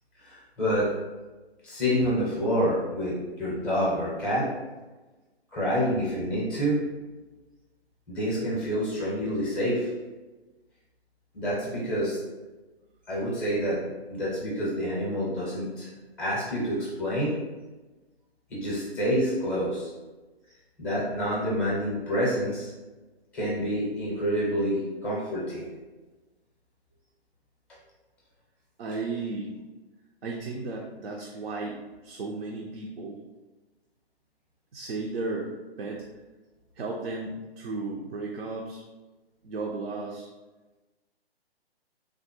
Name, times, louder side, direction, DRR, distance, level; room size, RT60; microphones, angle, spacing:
voice 1, 0.2-0.9 1.6-4.5 5.5-6.8 8.1-9.9 11.3-12.2 13.1-13.8 14.1-15.9 16.2-17.3 18.5-19.9 20.8-22.7 23.3-25.7, equal, 5° left, -6 dB, 0.5 m, -27 dB
voice 2, 28.8-29.6 30.2-33.2 34.7-36.0 36.8-38.8 39.4-40.3, right 3 dB, 65° right, -1 dB, 0.5 m, -34 dB
3.3 x 2.0 x 2.8 m, 1.2 s
figure-of-eight pair, 135°, 32 cm